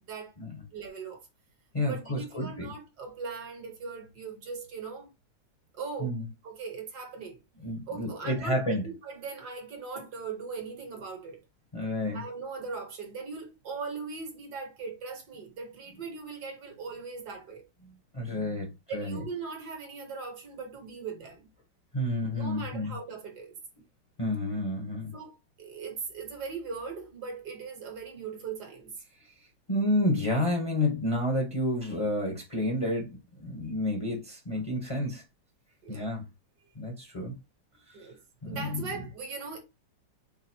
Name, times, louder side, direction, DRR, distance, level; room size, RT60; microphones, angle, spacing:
voice 1, 0.7-1.2 1.8-5.1 5.7-6.2 6.4-7.4 7.9-11.4 12.1-17.7 18.9-21.5 22.3-23.6 25.1-28.9 35.8-36.1 37.9-39.6, right 5 dB, 65° right, 1.6 m, -39 dB
voice 2, 1.7-2.7 6.0-6.2 7.6-8.8 11.7-12.2 17.8-19.2 21.9-22.9 24.2-25.1 29.7-35.2 35.9-36.2 36.7-37.3 37.9-38.1 38.4-38.8, left 1 dB, 25° left, 0.7 m, -30 dB
4.8 x 2.0 x 4.3 m
omnidirectional pair, 2.0 m